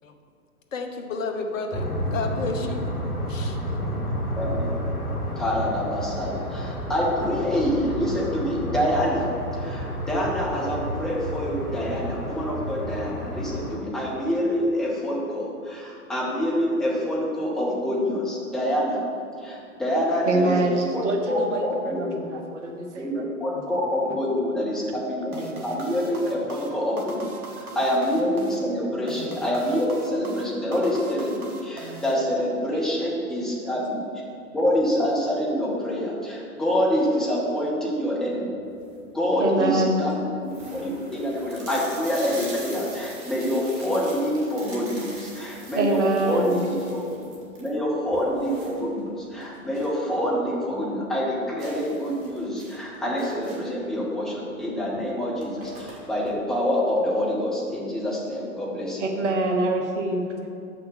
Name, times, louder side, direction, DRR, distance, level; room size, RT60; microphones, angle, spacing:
voice 1, 0.7-2.9 3.3-3.6, left 4 dB, 60° left, 5 dB, 1.1 m, -31 dB
sound 1, 1.7-13.8, equal, 80° left, 1.9 m, -31 dB
voice 2, 4.4-4.8 5.4-9.3 9.6-19.0 19.4-22.1 23.0-27.2 27.8-34.0 34.5-38.6 39.1-47.2 47.6-59.1, equal, ahead, -6 dB, 0.4 m, -26 dB
voice 3, 20.3-23.2 33.6-33.8 39.4-40.0 45.7-46.6 59.0-60.5, right 2 dB, 55° right, 2 dB, 1.4 m, -25 dB
sound 2, 25.3-32.7, right 2 dB, 80° right, 1.4 m, -40 dB
sound 3, 38.6-39.1 39.7-39.8 40.1-40.2 40.5-50.0 50.3-50.4 50.8-50.9 51.6-53.8 54.8-54.9 55.2-56.3, right 2 dB, 30° right, 1.9 m, -43 dB
6.5 x 5.8 x 7.0 m, 2.4 s
figure-of-eight pair, 115°, 44 cm